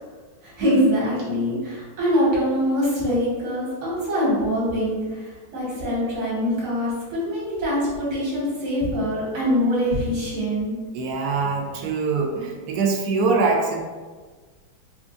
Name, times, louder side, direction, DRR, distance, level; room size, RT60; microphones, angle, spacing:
voice 1, 0.4-10.8, equal, 55° right, -8 dB, 1.8 m, -24 dB
voice 2, 10.9-13.8, right 4 dB, 75° right, 2 dB, 0.9 m, -23 dB
4.3 x 2.4 x 2.5 m, 1.4 s
omnidirectional pair, 2.1 m